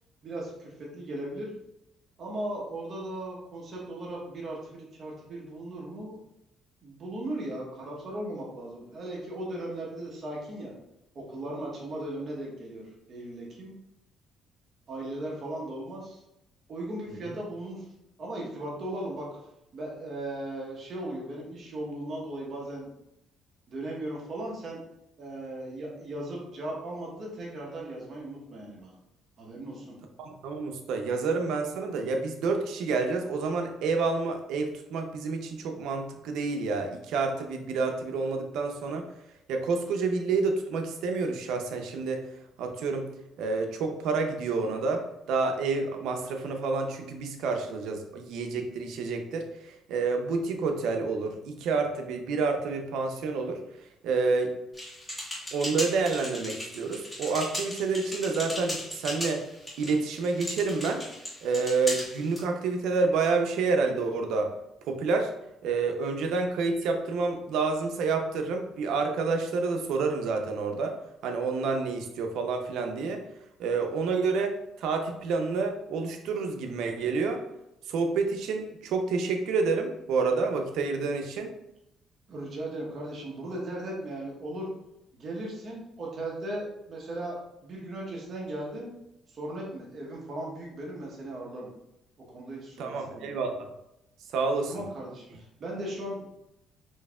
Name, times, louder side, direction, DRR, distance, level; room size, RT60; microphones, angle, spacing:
voice 1, 0.2-1.5 2.2-6.2 6.8-10.7 11.1-12.8 13.1-13.7 14.9-16.2 16.7-17.9 18.2-19.3 19.7-22.9 23.7-24.8 25.2-29.0 29.4-29.9 82.3-84.7 85.1-88.9 89.3-91.7 92.3-93.3 94.6-96.4, right 1 dB, 45° right, -3 dB, 1.0 m, -37 dB
voice 2, 30.2-39.1 39.5-42.3 42.6-43.1 43.4-53.6 54.0-54.5 55.5-59.4 59.8-61.0 61.4-64.5 64.8-65.3 65.6-71.0 71.2-73.2 73.6-77.4 77.9-81.5 92.8-93.7 94.3-94.8, right 4 dB, 80° right, 4 dB, 0.5 m, -29 dB
sound 1, 54.7-62.4, left 1 dB, 10° left, 1.4 m, -37 dB
4.5 x 2.7 x 2.3 m, 0.85 s
cardioid pair, 115°, 0 cm